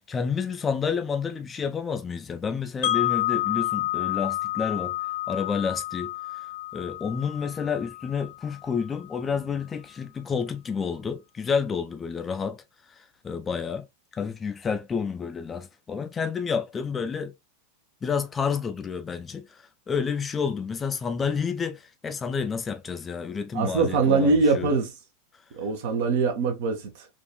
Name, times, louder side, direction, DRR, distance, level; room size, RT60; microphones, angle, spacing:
voice 1, 0.0-4.9 5.3-6.1 6.7-12.6 13.2-13.8 14.1-17.3 18.0-24.7, left 6 dB, 20° left, 0.5 m, -29 dB
Wind chime, 2.8-8.8, left 15 dB, 60° left, 0.9 m, -29 dB
voice 2, 23.5-24.9 25.5-27.1, right 4 dB, 55° right, 0.9 m, -23 dB
3.8 x 2.4 x 2.2 m
figure-of-eight pair, 90°, 0 cm